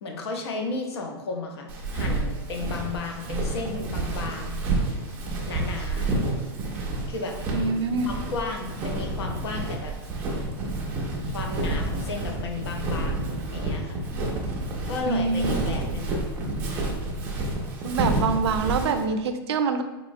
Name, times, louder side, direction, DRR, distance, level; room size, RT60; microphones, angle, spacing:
voice 1, 0.0-4.6 5.5-6.1 7.1-7.4 8.0-9.9 11.3-14.0 14.9-16.2, left 3 dB, 85° left, 2 dB, 0.7 m, -34 dB
Walk footsteps, 1.7-19.0, right 2 dB, 15° right, 0.3 m, -29 dB
voice 2, 7.5-8.1 15.1-15.6 17.8-19.8, right 4 dB, 85° right, 7 dB, 0.4 m, -25 dB
4.1 x 2.9 x 2.6 m, 1.1 s
supercardioid pair, 180°, 13 cm